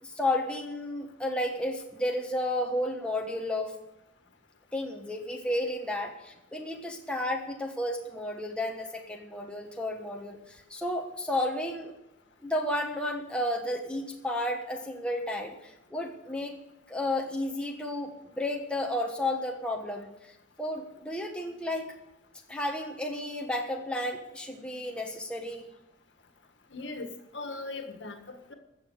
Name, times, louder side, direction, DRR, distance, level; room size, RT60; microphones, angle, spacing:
voice 1, 0.0-3.7 4.7-11.9 12.4-16.6 16.9-20.1 20.6-21.9 22.5-25.7, left 1 dB, 5° left, 1 dB, 1.3 m, -32 dB
voice 2, 26.7-28.5, left 3 dB, 75° left, 6 dB, 1.8 m, -39 dB
15.0 x 7.0 x 8.1 m, 0.92 s
head